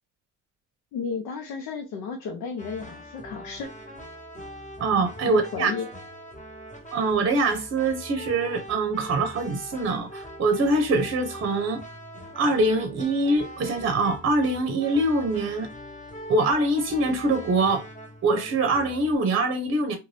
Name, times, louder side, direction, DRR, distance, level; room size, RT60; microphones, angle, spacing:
voice 1, 0.9-3.7 5.3-5.9, left 5 dB, 90° left, 0.6 m, -33 dB
sound 1, 2.6-19.2, equal, 25° left, 1.1 m, -42 dB
voice 2, 4.8-5.7 6.9-11.8 12.4-15.7 16.3-17.9 18.2-20.0, right 2 dB, 45° right, 0.7 m, -24 dB
2.5 x 2.3 x 3.2 m
cardioid pair, 90°, 30 cm